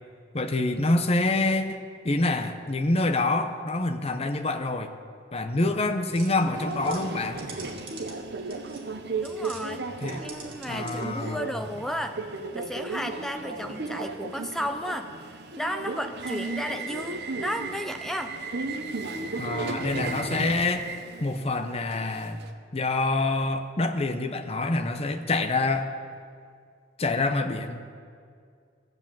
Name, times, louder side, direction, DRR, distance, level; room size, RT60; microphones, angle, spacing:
voice 1, 0.3-4.9 5.3-7.4 10.0-10.2 10.7-11.5 19.4-20.9 21.2-22.4 22.7-25.9 27.0-27.9, left 2 dB, 30° left, 6 dB, 0.8 m, -26 dB
sound 1, 6.1-9.6 10.0-11.2, right 4 dB, 30° right, 2.2 m, -46 dB
Subway metro underground, 6.5-22.5, right 3 dB, 60° right, 0.9 m, -35 dB
voice 2, 9.2-9.8 10.2-12.2 12.5-15.1 15.5-18.3, equal, ahead, 7 dB, 0.5 m, -33 dB
14.5 x 8.0 x 7.4 m, 2.2 s
head